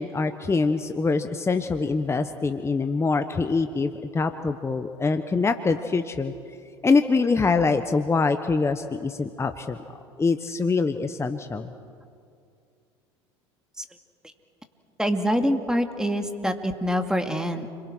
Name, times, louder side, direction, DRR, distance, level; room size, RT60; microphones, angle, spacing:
voice 1, 0.0-6.3 6.8-9.8 10.2-11.7, left 4 dB, 20° left, 8 dB, 1.2 m, -24 dB
voice 2, 15.0-17.7, equal, 5° right, 6 dB, 2.5 m, -25 dB
29.5 x 23.0 x 6.3 m, 2.4 s
hypercardioid pair, 80°, 14 cm